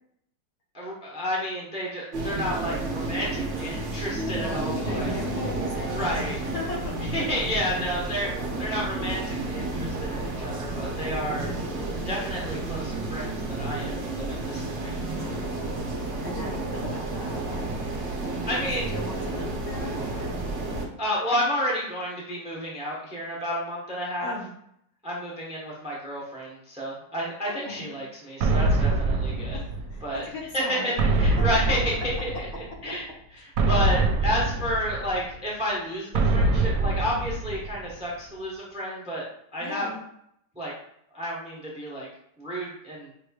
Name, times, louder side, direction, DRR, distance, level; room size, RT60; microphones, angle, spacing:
voice 1, 0.7-5.1 5.9-6.4 7.1-11.5 11.9-14.9 18.5-18.9 21.0-24.3 25.0-29.6 30.0-30.2 30.5-30.9 31.2-32.5 32.8-33.0 33.4-39.2 39.5-39.9 40.6-40.7 41.1-42.1 42.4-43.1, equal, 5° right, -4 dB, 0.7 m, -31 dB
sound 1, 2.1-20.9, right 2 dB, 50° right, 0.9 m, -31 dB
voice 2, 4.3-7.1 15.1-15.6 16.2-17.8 18.1-20.4 24.2-24.5 27.5-27.9 29.9-30.9 39.6-40.0, left 2 dB, 60° left, -2 dB, 1.3 m, -37 dB
sound 2, 28.4-30.2 31.0-32.7 33.6-35.3 36.1-37.9, right 2 dB, 75° right, 1.2 m, -24 dB
6.2 x 3.1 x 2.3 m, 0.73 s
omnidirectional pair, 2.0 m